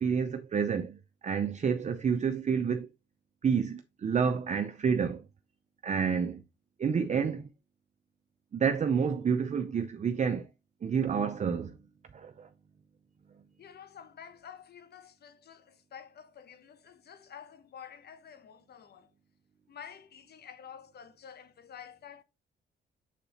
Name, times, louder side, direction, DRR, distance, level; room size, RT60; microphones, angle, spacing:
voice 1, 0.0-2.9 3.4-5.2 5.8-6.4 6.8-7.5 8.5-10.5 10.8-11.8 12.1-12.5, right 6 dB, 35° right, 0.6 m, -29 dB
voice 2, 13.6-19.1 19.7-22.2, left 8 dB, 55° left, 1.0 m, -50 dB
7.4 x 4.0 x 4.1 m
cardioid pair, 90°, 20 cm